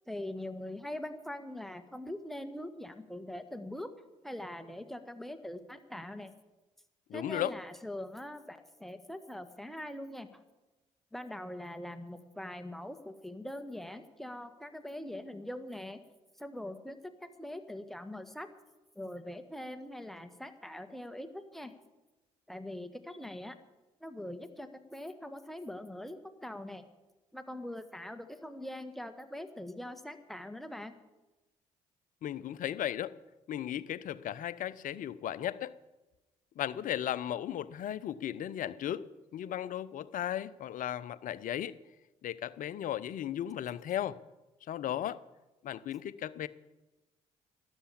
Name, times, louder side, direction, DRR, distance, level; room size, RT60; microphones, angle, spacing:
voice 1, 0.1-3.9 4.2-6.3 7.1-10.4 11.1-16.0 16.4-18.5 19.0-21.8 22.5-23.6 24.0-26.8 27.3-30.9, left 1 dB, ahead, 8 dB, 1.7 m, -42 dB
voice 2, 7.1-7.5 32.2-33.1 33.5-35.7 36.6-41.8 42.2-44.2 44.7-45.2 45.6-46.5, left 11 dB, 55° left, 17 dB, 0.8 m, -36 dB
12.5 x 11.0 x 8.6 m, 1.1 s
hypercardioid pair, 50°, 16 cm